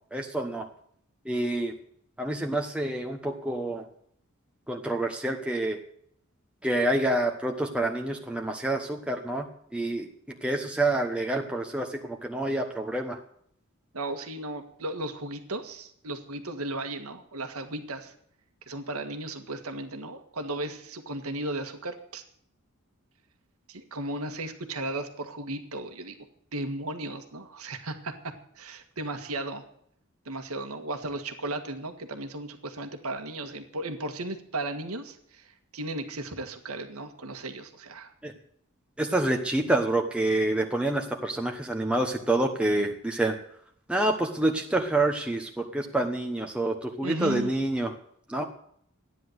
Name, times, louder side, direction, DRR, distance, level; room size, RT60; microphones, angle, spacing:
voice 1, 0.1-0.7 1.2-1.7 2.2-3.8 4.7-5.8 6.6-9.5 9.7-13.2 38.2-38.3 39.0-43.3 43.9-47.9 48.3-48.4, right 1 dB, 5° right, 2 dB, 1.1 m, -27 dB
voice 2, 13.9-18.1 18.7-22.2 23.7-26.2 26.5-29.7 30.3-38.1 47.0-47.5, right 2 dB, 90° right, 7 dB, 1.8 m, -35 dB
14.0 x 10.0 x 8.0 m, 0.67 s
head